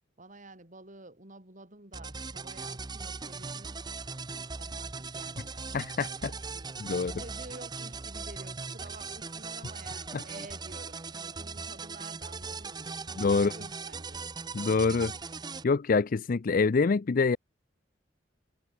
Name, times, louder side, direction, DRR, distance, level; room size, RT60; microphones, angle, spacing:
voice 1, 0.2-3.9 4.3-6.7 7.1-14.3, right 2 dB, 45° right, 6.5 m, -50 dB
sound 1, 1.9-15.6, right 4 dB, 25° right, 0.7 m, -39 dB
voice 2, 5.7-6.3 6.8-7.1 10.1-10.2 13.2-13.5 14.5-15.1 15.6-17.4, left 4 dB, 50° left, 0.5 m, -25 dB
head